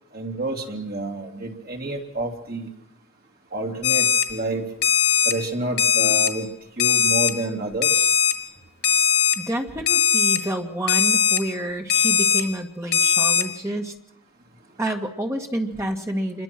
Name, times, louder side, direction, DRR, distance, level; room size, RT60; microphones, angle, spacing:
voice 1, 0.1-2.7 3.5-4.7 5.2-6.5 6.8-8.1, right 2 dB, 45° right, 1 dB, 2.8 m, -29 dB
Alarm, 3.8-4.2 4.8-5.3 5.8-6.3 6.8-7.3 7.8-8.3 8.8-9.3 9.9-10.4 10.9-11.4 11.9-12.4 12.9-13.4, left 8 dB, 85° left, 2.5 m, -19 dB
voice 2, 9.4-13.9 14.8-16.4, right 1 dB, 15° right, 2 dB, 2.0 m, -28 dB
27.0 x 22.5 x 6.1 m, 0.76 s
head